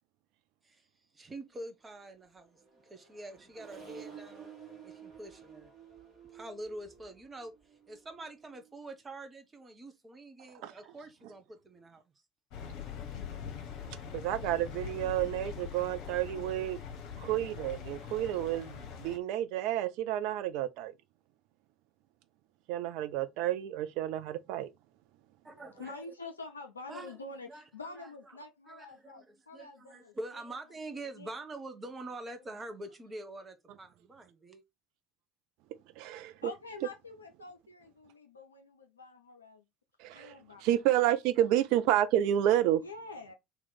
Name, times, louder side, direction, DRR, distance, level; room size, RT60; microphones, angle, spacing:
voice 1, 1.1-2.6 2.8-4.5 4.8-5.7 6.3-7.5 7.9-12.0 25.4-26.1 26.9-27.2 27.5-28.1 28.7-34.6, right 2 dB, 20° right, 0.9 m, -45 dB
Accelerating revving vroom, 2.1-8.8, right 7 dB, 40° right, 1.7 m, -52 dB
sound 1, 12.5-19.2, left 7 dB, 55° left, 0.9 m, -43 dB
voice 2, 14.1-16.8 17.2-20.9 22.7-24.7 36.0-36.5 40.0-40.3 40.6-42.8, right 12 dB, 60° right, 0.4 m, -30 dB
voice 3, 25.5-30.1 31.0-31.3 36.4-39.6 40.1-40.7 42.8-43.3, left 3 dB, 80° left, 0.4 m, -47 dB
3.0 x 2.9 x 3.7 m
figure-of-eight pair, 60°, 0 cm